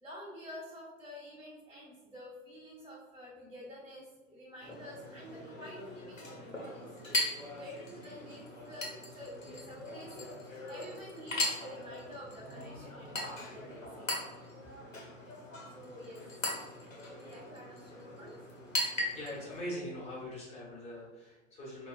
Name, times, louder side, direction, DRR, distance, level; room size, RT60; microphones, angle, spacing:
voice 1, 0.0-6.9 7.5-14.1 15.6-16.2 16.5-16.7 17.1-18.4, equal, 5° right, -8 dB, 1.0 m, -49 dB
Chink clink, 4.6-19.6, left 1 dB, 90° left, 1.0 m, -39 dB
voice 2, 19.1-21.9, equal, 15° left, -6 dB, 1.1 m, -42 dB
4.3 x 2.3 x 2.4 m, 1.3 s
figure-of-eight pair, 100°, 38 cm